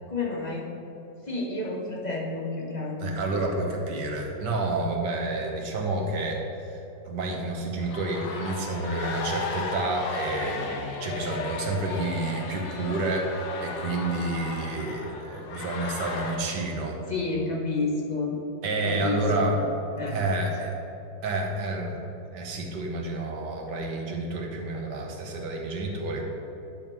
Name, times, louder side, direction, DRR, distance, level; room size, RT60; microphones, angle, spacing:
voice 1, 0.1-0.7 1.3-3.4 17.1-18.4 18.8-19.7 19.9-20.2, left 3 dB, 30° left, -3 dB, 0.8 m, -30 dB
voice 2, 3.0-6.4 7.0-17.0 18.6-19.6 20.1-20.8 21.2-22.0 22.3-26.2, right 2 dB, 70° right, 1 dB, 1.6 m, -29 dB
sound 1, 7.8-16.4, left 4 dB, 80° left, 1.5 m, -35 dB
10.5 x 3.6 x 5.9 m, 2.8 s
omnidirectional pair, 2.0 m